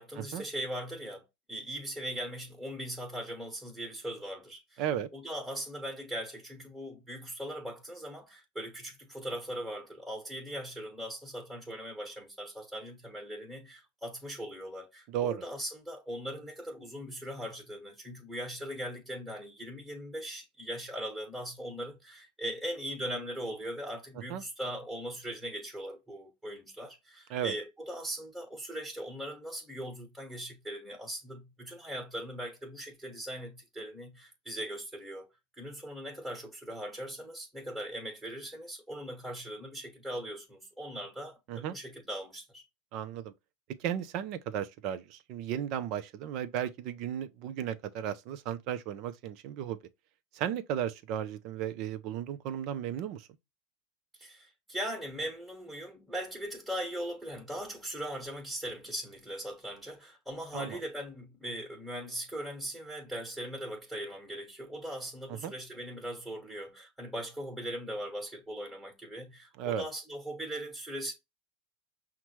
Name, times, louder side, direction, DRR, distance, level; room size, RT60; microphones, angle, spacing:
voice 1, 0.0-4.8 5.1-35.3 35.5-42.6 54.2-71.1, equal, 5° right, 1.4 m, -40 dB
voice 2, 4.8-5.1 15.1-15.4 24.3-24.4 27.3-27.5 41.5-41.8 42.9-43.3 43.8-49.8 50.3-53.3 60.5-60.8 65.3-65.5 69.6-69.9, right 10 dB, 55° right, 0.6 m, -35 dB
5.8 x 2.2 x 3.1 m
hypercardioid pair, 110°, 0 cm